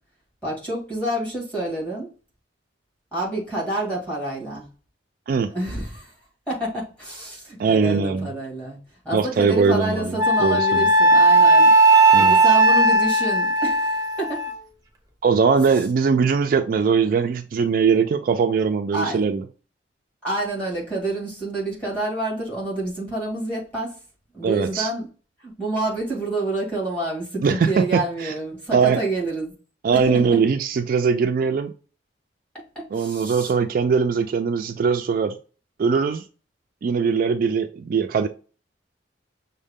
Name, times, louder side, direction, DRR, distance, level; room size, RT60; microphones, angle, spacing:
voice 1, 0.4-2.1 3.1-4.7 5.5-6.1 6.5-8.8 9.0-11.7 12.1-14.4 18.9-19.3 20.2-23.9 24.3-25.1 25.4-29.5 29.9-30.4 32.5-33.5, right 2 dB, 5° left, -5 dB, 1.9 m, -28 dB
voice 2, 7.6-8.3 9.1-10.9 12.1-12.3 15.2-19.4 24.4-24.9 27.4-28.3 28.7-29.0 29.8-31.7 32.9-35.4 35.8-36.2 36.8-38.3, right 5 dB, 50° right, 7 dB, 0.3 m, -21 dB
Wind instrument woodwind instrument, 10.2-14.5, right 2 dB, 20° right, 0.6 m, -16 dB
6.2 x 2.1 x 3.6 m, 0.37 s
head